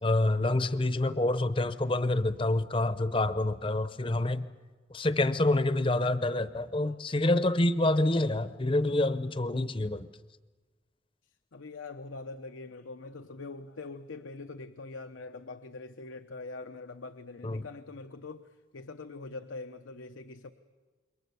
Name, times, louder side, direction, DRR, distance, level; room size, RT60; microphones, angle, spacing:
voice 1, 0.0-4.5 4.9-10.1 17.4-17.7, left 2 dB, 25° left, 13 dB, 0.7 m, -27 dB
voice 2, 11.2-20.5, left 3 dB, 90° left, 7 dB, 0.8 m, -44 dB
28.0 x 23.0 x 7.0 m, 1.4 s
head